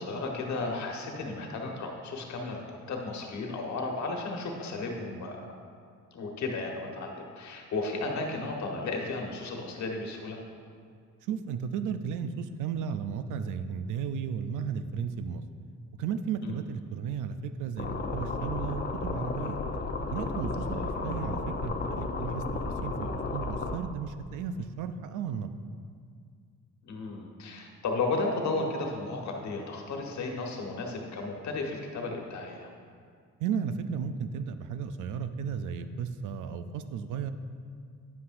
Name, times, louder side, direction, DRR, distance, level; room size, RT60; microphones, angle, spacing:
voice 1, 0.0-5.5 6.1-10.4 16.4-16.6 20.9-21.1 26.8-32.7, left 3 dB, 65° left, 1 dB, 1.3 m, -34 dB
voice 2, 11.3-15.4 16.0-19.6 20.1-22.4 22.8-25.5 33.4-37.3, right 7 dB, 80° right, 10 dB, 0.5 m, -34 dB
Geothermal Hotpot, 17.8-23.8, left 3 dB, 35° left, 0.6 m, -33 dB
9.6 x 8.3 x 2.6 m, 2.1 s
cardioid pair, 90°, 30 cm